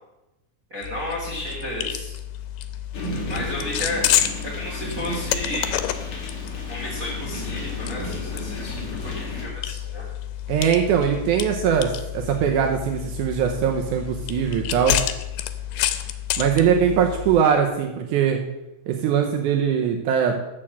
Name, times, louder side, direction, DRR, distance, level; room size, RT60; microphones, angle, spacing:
voice 1, 0.7-2.1 3.3-5.7 6.7-10.0 15.7-16.0, left 1 dB, 35° right, -4 dB, 1.4 m, -33 dB
sound 1, 0.8-17.4, left 12 dB, 90° left, 2.6 m, -29 dB
sound 2, 2.9-9.5, left 1 dB, 45° left, 2.0 m, -34 dB
voice 2, 10.5-15.0 16.4-18.4 18.9-20.4, right 8 dB, 80° right, 2 dB, 1.8 m, -21 dB
7.5 x 6.7 x 7.3 m, 0.94 s
omnidirectional pair, 4.5 m